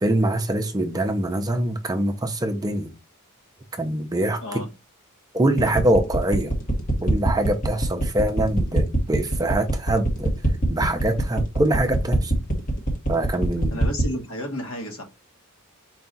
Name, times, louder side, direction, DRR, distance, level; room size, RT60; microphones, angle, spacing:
voice 1, 0.0-2.9 3.8-4.4 5.3-6.5 7.0-10.3 10.7-12.3 13.1-13.8, right 1 dB, 15° right, 0.5 m, -24 dB
sound 1, 5.6-14.1, right 2 dB, 40° left, 1.1 m, -23 dB
voice 2, 13.7-15.0, equal, 65° left, 1.3 m, -32 dB
4.6 x 2.3 x 3.9 m
head